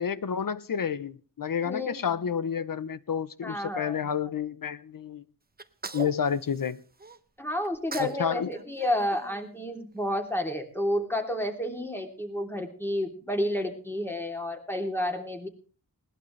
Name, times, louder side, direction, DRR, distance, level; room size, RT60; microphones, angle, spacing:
voice 1, 0.0-5.2 5.9-6.8 8.0-8.5, left 7 dB, 65° left, 0.9 m, -30 dB
voice 2, 1.6-2.1 3.4-4.0 7.4-15.5, left 1 dB, 5° left, 3.1 m, -30 dB
Sneeze, 5.6-7.2 7.6-8.2 8.5-10.0, right 3 dB, 25° right, 0.8 m, -41 dB
20.5 x 18.0 x 3.3 m
wide cardioid pair, 115°, 36 cm